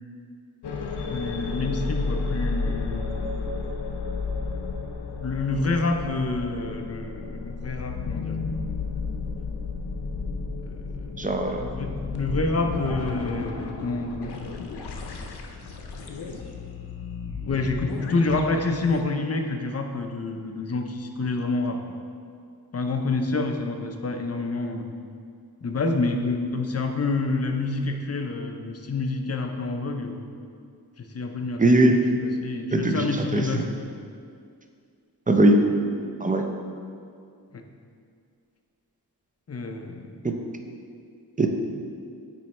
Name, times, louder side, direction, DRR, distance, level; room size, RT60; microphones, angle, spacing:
sound 1, 0.6-19.0, left 4 dB, 85° left, 0.6 m, -32 dB
voice 1, 1.1-3.2 5.2-8.4 10.6-11.1 11.6-14.5 17.4-21.8 22.7-24.9 25.6-30.3 31.0-33.8 37.5-37.7 39.5-40.1, left 3 dB, 40° left, 4 dB, 0.6 m, -28 dB
voice 2, 11.2-11.6 31.6-31.9 32.7-33.1 33.3-33.4 35.3-35.6 36.2-36.5 40.2-40.4 41.4-41.5, right 2 dB, 20° right, 4 dB, 0.5 m, -19 dB
9.1 x 3.1 x 4.2 m, 2.3 s
wide cardioid pair, 90°, 39 cm